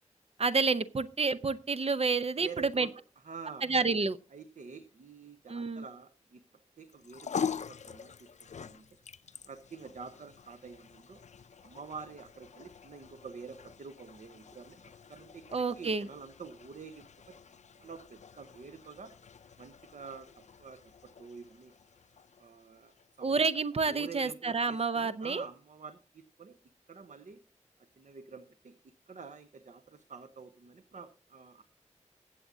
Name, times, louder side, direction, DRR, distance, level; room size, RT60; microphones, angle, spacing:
voice 1, 0.4-2.9 3.6-4.2 5.5-5.8 15.5-16.1 23.2-25.4, right 4 dB, 55° right, 13 dB, 0.7 m, -29 dB
voice 2, 2.4-2.9 3.2-3.7 4.3-6.4 6.8-8.9 9.5-11.2 11.6-17.3 17.8-19.1 19.6-20.9 21.2-21.7 22.4-22.9 23.2-23.4 23.9-26.6 26.9-27.4 28.0-31.6, right 5 dB, 80° right, 9 dB, 0.9 m, -48 dB
sound 1, 6.9-23.4, left 7 dB, 70° left, 0.4 m, -44 dB
22.0 x 7.6 x 2.7 m, 0.34 s
wide cardioid pair, 85°, 13 cm